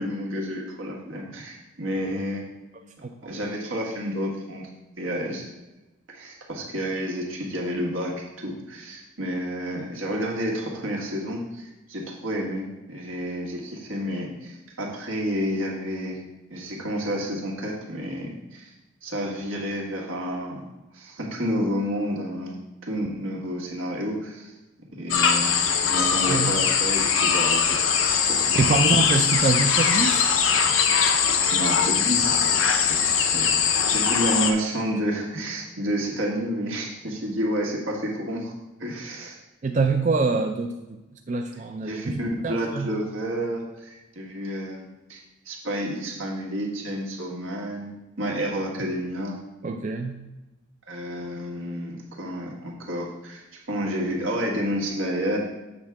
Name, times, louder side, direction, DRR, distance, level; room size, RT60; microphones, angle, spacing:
voice 1, 0.0-2.5 3.2-4.7 5.0-5.5 6.1-16.2 16.5-18.7 19.0-20.6 20.9-22.5 22.8-24.5 24.9-27.8 28.1-28.7 31.5-32.6 32.9-38.5 38.8-39.4 41.8-44.8 45.1-45.2 45.4-47.9 48.2-49.4 50.9-55.4, equal, 85° right, -1 dB, 1.6 m, -30 dB
sound 1, 25.1-34.5, left 6 dB, 80° left, 0.7 m, -21 dB
voice 2, 28.6-30.3 39.6-40.7 41.3-42.2 42.4-42.9 49.6-50.2, right 4 dB, 35° right, 4 dB, 0.4 m, -24 dB
7.6 x 3.6 x 5.9 m, 1.0 s
head